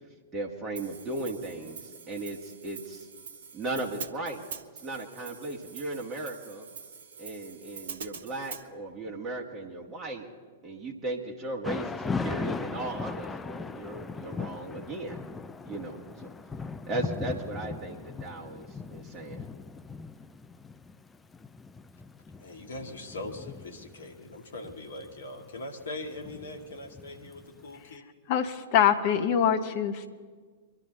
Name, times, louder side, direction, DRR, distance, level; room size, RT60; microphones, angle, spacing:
voice 1, 0.3-3.1 3.5-4.4 4.8-6.7 7.2-10.3 10.6-15.2 15.6-16.3 16.9-19.4, right 2 dB, 20° right, -2 dB, 1.9 m, -36 dB
Hi-hat, 0.8-8.7, right 6 dB, 60° right, 1.0 m, -44 dB
Thunder / Rain, 11.6-27.7, left 4 dB, 10° left, 0.5 m, -39 dB
voice 2, 22.4-28.0, left 2 dB, 65° left, 3 dB, 2.0 m, -41 dB
voice 3, 28.3-30.1, left 8 dB, 45° left, 8 dB, 1.1 m, -24 dB
24.5 x 11.5 x 4.1 m, 1.5 s
figure-of-eight pair, 100°, 0 cm